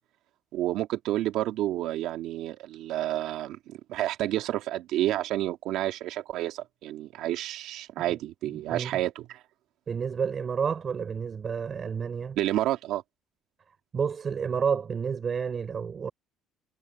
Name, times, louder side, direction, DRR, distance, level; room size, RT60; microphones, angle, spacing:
voice 1, 0.5-9.4 12.4-13.0, right 14 dB, 70° right, 2.7 m, -30 dB
voice 2, 8.4-8.9 9.9-12.4 13.9-16.1, right 6 dB, 30° right, 5.3 m, -30 dB
cardioid pair, 160°, 0 cm